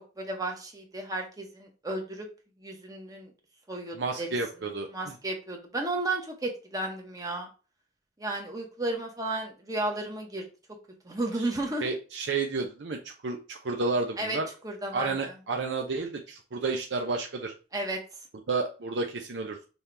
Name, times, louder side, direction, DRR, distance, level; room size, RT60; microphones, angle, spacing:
voice 1, 0.2-2.3 2.6-3.3 3.7-4.4 4.9-7.5 8.2-10.5 11.0-11.9 14.2-15.3 17.7-18.0, right 2 dB, 20° right, 2 dB, 1.0 m, -33 dB
voice 2, 3.9-5.1 11.8-14.5 14.9-17.5 18.5-19.6, right 3 dB, 85° right, 2 dB, 0.6 m, -31 dB
5.5 x 2.9 x 3.3 m, 0.34 s
head